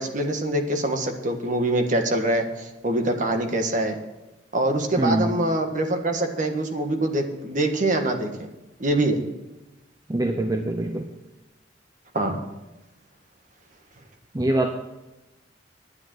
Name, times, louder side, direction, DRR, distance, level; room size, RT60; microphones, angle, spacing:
voice 1, 0.0-4.0 4.5-8.5 8.8-9.2 12.1-12.4, right 1 dB, 45° right, 5 dB, 1.5 m, -24 dB
voice 2, 5.0-5.4 10.1-11.1 14.3-14.7, right 1 dB, 20° right, 4 dB, 0.7 m, -24 dB
10.5 x 9.5 x 6.2 m, 1.0 s
head